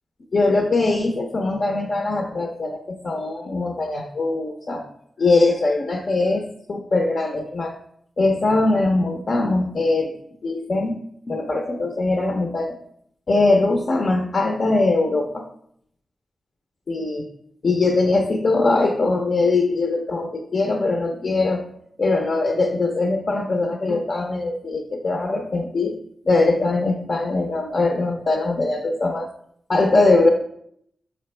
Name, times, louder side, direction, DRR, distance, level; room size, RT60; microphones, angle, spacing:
voice 1, 0.3-4.8 5.2-7.7 8.2-10.1 10.4-11.0 11.3-12.8 13.3-15.4 16.9-17.2 17.6-21.7 22.0-26.0 26.2-29.3 29.7-30.3, left 2 dB, 50° left, 2 dB, 0.6 m, -21 dB
6.3 x 5.0 x 3.2 m, 0.69 s
wide cardioid pair, 120°, 0 cm